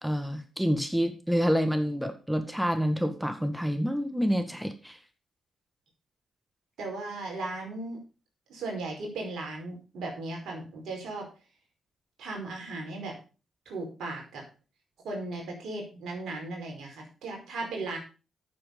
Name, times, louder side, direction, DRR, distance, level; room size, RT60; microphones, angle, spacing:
voice 1, 0.0-5.0, equal, ahead, 7 dB, 1.9 m, -28 dB
voice 2, 6.8-8.0 8.5-11.3 12.2-13.2 13.7-14.4 15.0-18.0, right 2 dB, 70° right, 1 dB, 4.7 m, -36 dB
11.0 x 6.9 x 5.4 m, 0.34 s
hypercardioid pair, 40°, 0 cm